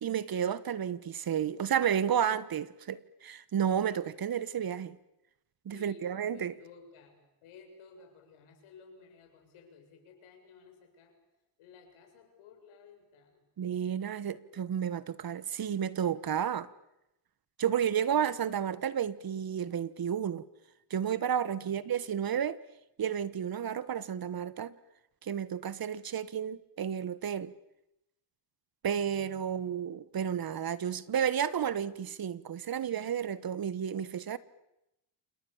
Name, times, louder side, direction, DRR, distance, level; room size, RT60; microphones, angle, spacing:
voice 1, 0.0-5.0 5.6-6.5 13.6-16.7 17.6-20.4 20.9-22.6 23.0-24.7 25.2-27.5 28.8-34.4, right 8 dB, 45° right, 17 dB, 1.4 m, -32 dB
voice 2, 5.7-11.2 11.6-13.5 18.2-18.3 21.5-21.8 28.9-29.8, left 5 dB, 80° left, 4 dB, 7.4 m, -56 dB
28.5 x 27.0 x 7.3 m, 0.89 s
cardioid pair, 80°, 49 cm